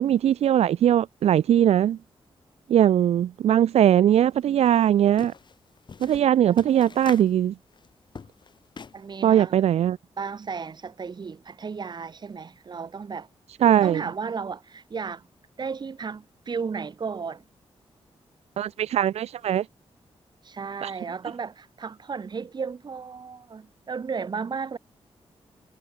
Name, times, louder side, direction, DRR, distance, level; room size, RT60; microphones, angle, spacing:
voice 1, 0.0-2.0 2.7-5.3 6.0-7.5 9.2-10.0 13.6-14.0 18.6-19.7 20.8-20.9, right 10 dB, 80° right, 0.4 m, -20 dB
sound 1, 4.1-4.2 4.5-9.1, left 5 dB, 45° left, 2.0 m, -44 dB
voice 2, 6.5-6.8 8.9-9.6 10.2-13.3 13.8-15.3 15.6-17.4 20.4-24.8, right 5 dB, 45° right, 1.3 m, -34 dB
wide cardioid pair, 115°, 11 cm